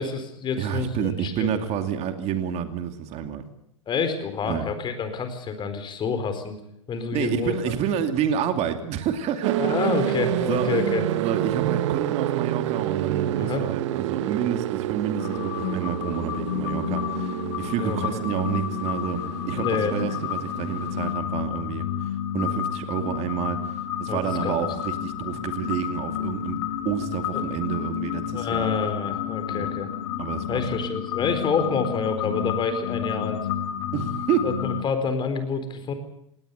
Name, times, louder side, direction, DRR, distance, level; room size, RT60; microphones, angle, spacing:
voice 1, 0.0-1.6 3.9-6.6 6.9-7.5 9.6-11.0 13.4-13.6 17.7-18.0 19.5-20.2 24.1-24.6 27.3-27.4 28.3-29.9 30.5-33.4 34.4-35.9, left 5 dB, 30° left, 9 dB, 4.3 m, -28 dB
voice 2, 0.6-3.4 4.4-4.7 7.1-9.6 10.4-19.2 19.5-22.1 22.3-28.7 29.5-29.7 30.2-30.8 33.9-34.5, right 9 dB, 40° right, 7 dB, 2.5 m, -29 dB
sound 1, 9.4-21.1, right 13 dB, 60° right, 1.0 m, -29 dB
sound 2, 15.2-34.8, left 10 dB, 60° left, 3.6 m, -30 dB
19.5 x 18.5 x 8.2 m, 0.78 s
hypercardioid pair, 105°, 17 cm